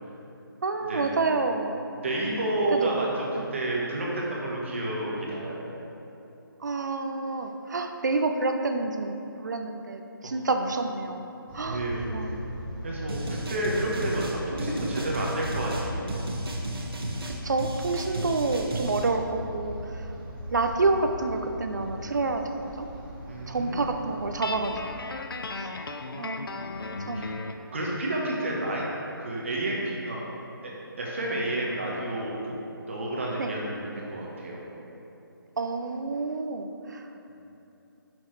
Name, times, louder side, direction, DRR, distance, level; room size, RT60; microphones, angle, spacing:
voice 1, 0.6-1.8 2.7-3.1 3.4-3.5 6.6-11.2 11.5-12.4 17.3-20.1 20.5-22.4 22.8-22.9 23.5-24.8 26.2-26.5 27.1-27.4 33.4-33.5 35.6-37.1, right 3 dB, 50° right, 5 dB, 0.6 m, -28 dB
voice 2, 1.9-5.6 10.2-10.3 11.6-12.1 12.8-16.3 23.3-23.8 27.1-27.3 27.7-28.9 29.2-30.2 30.6-30.7 31.0-32.5 32.9-34.7, right 1 dB, 35° right, -3 dB, 1.2 m, -30 dB
sound 1, 11.5-25.0, equal, 5° right, 1.0 m, -39 dB
sound 2, 13.1-19.1, right 1 dB, 90° right, 1.3 m, -34 dB
Guitar, 24.4-27.7, left 3 dB, 70° left, 0.6 m, -36 dB
9.6 x 6.2 x 3.2 m, 2.9 s
hypercardioid pair, 175°, 12 cm